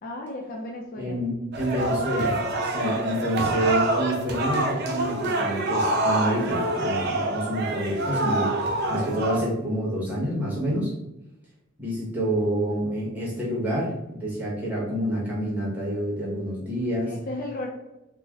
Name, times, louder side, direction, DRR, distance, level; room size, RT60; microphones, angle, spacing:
voice 1, 0.0-1.2 17.0-17.7, left 1 dB, 40° left, 0 dB, 0.4 m, -34 dB
voice 2, 1.0-2.4 2.6-10.9 11.8-17.1, equal, 5° right, -7 dB, 0.9 m, -28 dB
sound 1, 1.5-9.4, right 2 dB, 50° right, 0.5 m, -26 dB
3.1 x 2.0 x 3.5 m, 0.93 s
head